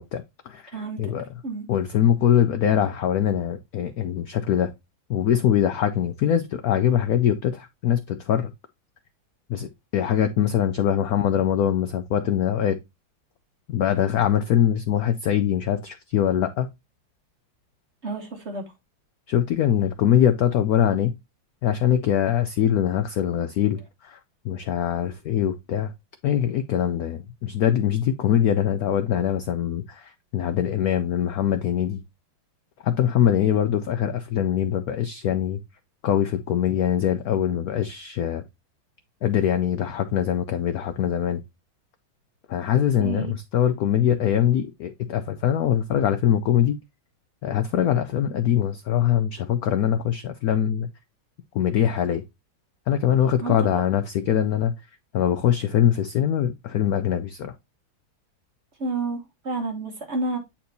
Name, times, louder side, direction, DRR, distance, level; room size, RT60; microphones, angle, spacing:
voice 1, 0.0-1.2 1.7-4.7 5.1-8.5 9.5-12.8 13.7-16.7 19.3-21.1 21.6-24.2 24.4-25.9 26.2-32.0 32.8-35.6 36.0-38.4 39.2-41.4 42.5-46.8 47.4-50.9 51.5-52.2 52.9-54.7 55.1-57.5, left 10 dB, 85° left, 0.8 m, -23 dB
voice 2, 0.7-1.1 1.4-1.7 18.0-18.7 43.0-43.3 53.4-53.6 58.8-60.4, right 3 dB, 40° right, 1.2 m, -30 dB
8.4 x 4.3 x 2.6 m
omnidirectional pair, 2.2 m